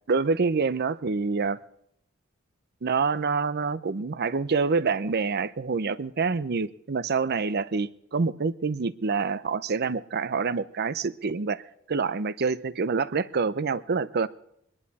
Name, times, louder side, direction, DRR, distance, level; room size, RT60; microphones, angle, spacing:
voice 1, 0.1-1.6 2.8-11.6 11.9-14.3, right 4 dB, 50° right, 16 dB, 0.6 m, -26 dB
23.5 x 11.0 x 4.1 m, 0.73 s
head